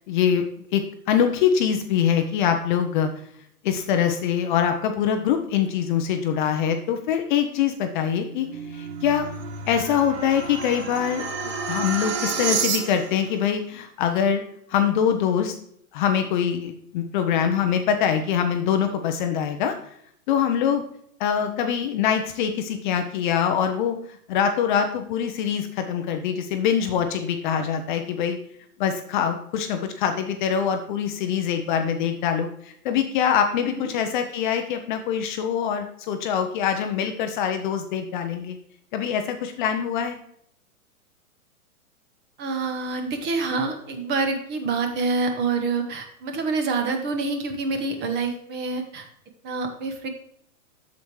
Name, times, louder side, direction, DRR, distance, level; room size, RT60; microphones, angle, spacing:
voice 1, 0.1-0.4 0.7-3.1 3.6-9.2 9.7-14.4 14.7-15.6 15.9-19.9 20.3-20.8 21.2-28.4 28.8-38.6 38.9-40.2, left 8 dB, 35° left, 6 dB, 0.6 m, -24 dB
sound 1, 8.1-13.3, right 6 dB, 45° right, 1.7 m, -30 dB
voice 2, 42.4-49.0 49.4-50.1, right 4 dB, 25° right, 5 dB, 1.2 m, -27 dB
7.8 x 7.2 x 3.1 m, 0.68 s
hypercardioid pair, 130°, 43 cm